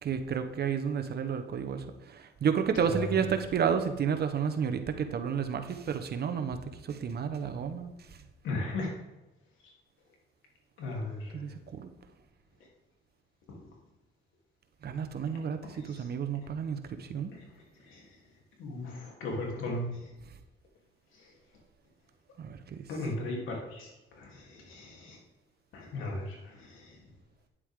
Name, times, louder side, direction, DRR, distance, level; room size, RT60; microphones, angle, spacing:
voice 1, 0.0-7.9 11.3-11.9 14.8-17.3 22.4-22.8 23.2-23.3, right 7 dB, 55° right, 7 dB, 1.1 m, -31 dB
voice 2, 8.4-8.9 10.8-11.4 15.8-16.1 17.3-17.4 17.9-18.0 18.6-20.1 22.9-25.2 25.7-27.0, left 2 dB, 85° left, -1 dB, 3.2 m, -37 dB
9.9 x 8.1 x 3.7 m, 1.0 s
cardioid pair, 90°, 20 cm